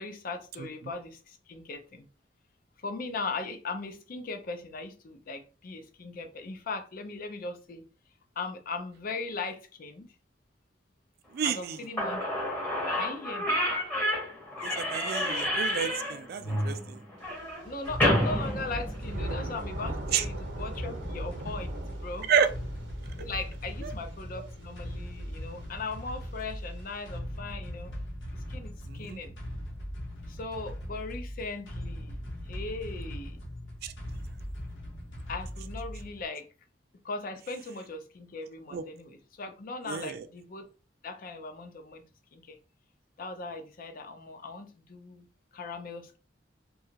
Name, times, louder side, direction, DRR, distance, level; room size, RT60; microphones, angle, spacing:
voice 1, 0.0-2.1 2.8-7.9 8.4-10.1 11.4-12.6 12.9-13.6 17.7-22.3 23.2-28.0 28.5-29.4 30.2-32.2 32.4-33.4 35.3-36.5 37.0-40.7 41.0-42.1 42.3-42.6 43.2-45.3 45.5-46.2, left 3 dB, 50° left, 0.5 m, -39 dB
voice 2, 11.3-11.8 14.6-17.0 20.1-20.2 22.3-22.5 23.8-23.9 28.9-29.2 33.8-33.9 38.7-38.8 39.9-40.3, right 7 dB, 55° right, 0.3 m, -30 dB
Slam / Squeak, 11.7-11.8 12.0-19.4, equal, 10° left, 0.8 m, -30 dB
Thunder / Rain, 17.2-27.2, right 1 dB, 80° right, 0.8 m, -42 dB
sound 1, 17.8-36.3, equal, 85° left, 0.9 m, -39 dB
2.8 x 2.3 x 2.7 m
head